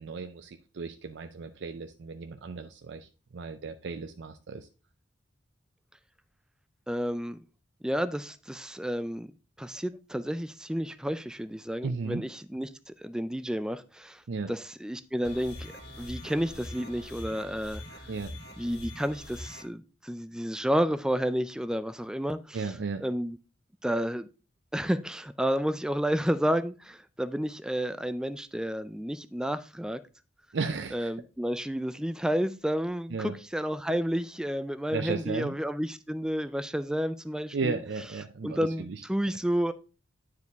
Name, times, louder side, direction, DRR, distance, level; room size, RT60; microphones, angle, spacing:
voice 1, 0.0-4.7 11.8-12.2 14.3-14.5 18.1-18.3 22.5-23.0 30.5-31.1 33.1-33.4 34.9-35.5 37.5-39.0, right 4 dB, 65° right, 0.5 m, -35 dB
voice 2, 6.9-7.4 7.8-9.3 9.6-14.2 14.5-18.0 18.6-22.6 23.0-23.4 23.8-24.3 24.7-30.0 30.9-37.8 38.4-39.7, equal, 5° right, 0.3 m, -31 dB
sound 1, 15.2-19.6, left 1 dB, 55° left, 2.1 m, -43 dB
9.7 x 4.7 x 3.5 m
head